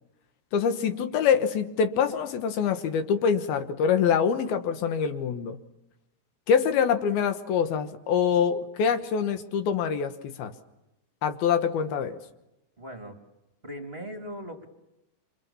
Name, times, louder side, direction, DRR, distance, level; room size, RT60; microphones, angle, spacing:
voice 1, 0.5-5.6 6.5-10.5 11.2-12.2, left 7 dB, 70° left, 9 dB, 3.0 m, -25 dB
voice 2, 12.8-13.2 13.6-14.6, equal, 20° right, 4 dB, 1.7 m, -39 dB
28.0 x 27.0 x 7.1 m, 0.89 s
omnidirectional pair, 4.7 m